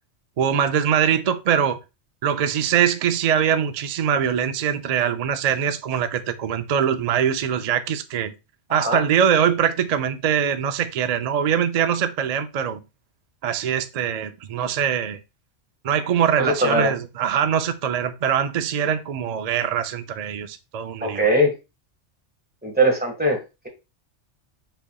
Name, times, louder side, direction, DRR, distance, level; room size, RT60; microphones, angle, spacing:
voice 1, 0.4-1.8 2.2-8.3 8.7-12.8 13.4-15.2 15.8-21.3, right 8 dB, 60° right, 0.4 m, -22 dB
voice 2, 8.7-9.0 16.4-16.9 21.0-21.5 22.6-23.4, right 1 dB, 10° right, 1.5 m, -20 dB
5.6 x 4.0 x 2.3 m
omnidirectional pair, 1.2 m